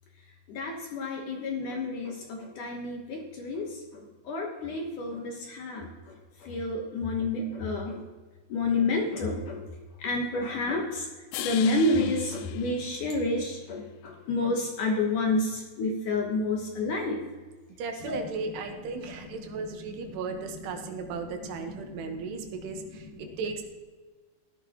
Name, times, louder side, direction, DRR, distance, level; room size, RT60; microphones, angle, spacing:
voice 1, 0.2-8.1 8.5-9.7 10.0-17.2 18.0-18.3 18.7-23.4, left 2 dB, 65° left, 1 dB, 2.2 m, -31 dB
sound 1, 11.3-13.7, left 15 dB, 85° left, 2.7 m, -40 dB
voice 2, 17.8-23.6, right 4 dB, 80° right, 5 dB, 3.2 m, -36 dB
14.5 x 11.5 x 2.9 m, 1.3 s
omnidirectional pair, 4.8 m